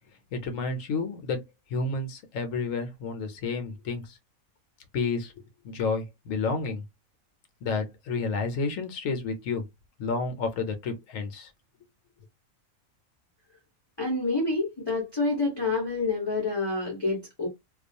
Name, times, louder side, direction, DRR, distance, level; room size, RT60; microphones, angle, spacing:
voice 1, 0.3-1.4 1.7-4.2 4.9-5.3 5.6-6.8 7.6-9.6 10.0-11.5, left 4 dB, 75° left, 1.0 m, -30 dB
voice 2, 14.0-17.5, left 3 dB, 30° left, 0.5 m, -28 dB
2.3 x 2.2 x 2.6 m
omnidirectional pair, 1.5 m